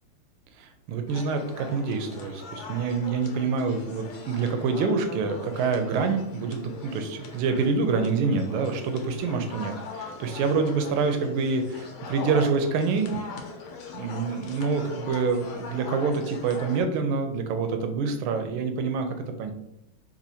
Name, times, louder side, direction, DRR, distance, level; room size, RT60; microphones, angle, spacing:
voice 1, 0.6-13.1 13.9-19.5, right 4 dB, 80° right, 6 dB, 1.4 m, -26 dB
sound 1, 1.1-16.8, left 4 dB, 80° left, 1.5 m, -41 dB
4.2 x 2.4 x 2.7 m, 0.80 s
omnidirectional pair, 2.4 m